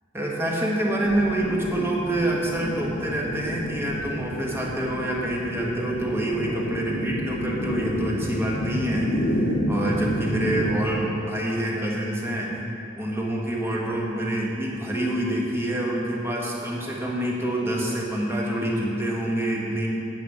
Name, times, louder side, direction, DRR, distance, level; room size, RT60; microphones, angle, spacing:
voice 1, 0.1-12.6 13.0-19.9, right 1 dB, 10° right, -3 dB, 1.4 m, -27 dB
sound 1, 1.0-10.7, equal, 85° left, 1.1 m, -29 dB
9.1 x 7.9 x 4.8 m, 2.8 s
head